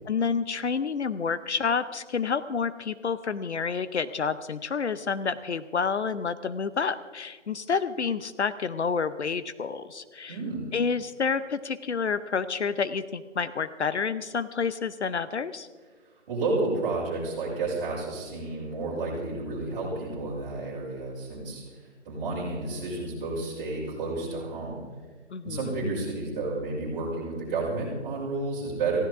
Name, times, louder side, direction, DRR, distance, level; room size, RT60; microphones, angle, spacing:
voice 1, 0.1-10.4 10.7-15.7 25.3-25.7, left 5 dB, 65° left, 14 dB, 0.8 m, -29 dB
voice 2, 10.3-10.7 16.3-24.8 25.4-29.0, right 3 dB, 15° right, -7 dB, 5.8 m, -31 dB
19.0 x 16.0 x 3.6 m, 1.5 s
figure-of-eight pair, 165°, 36 cm